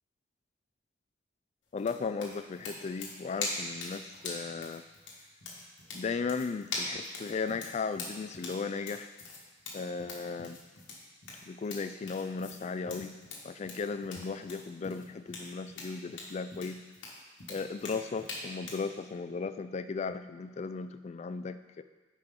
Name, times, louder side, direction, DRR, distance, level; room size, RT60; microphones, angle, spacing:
voice 1, 1.7-4.8 5.9-9.1 9.7-10.6 11.5-13.1 13.4-16.8 17.5-21.8, left 4 dB, 35° left, 11 dB, 0.3 m, -36 dB
sound 1, 1.8-18.9, left 3 dB, 90° left, 1.4 m, -42 dB
9.9 x 4.9 x 3.7 m, 1.3 s
head